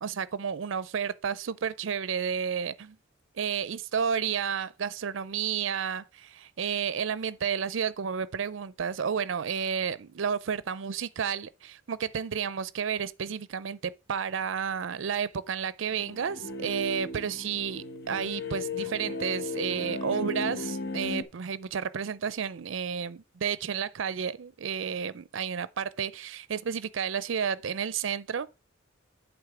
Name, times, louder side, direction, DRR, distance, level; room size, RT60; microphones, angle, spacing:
voice 1, 0.0-3.0 3.4-28.5, right 7 dB, 65° right, 0.5 m, -31 dB
sound 1, 15.9-21.2, left 2 dB, 55° left, 1.0 m, -35 dB
8.2 x 3.5 x 6.0 m
head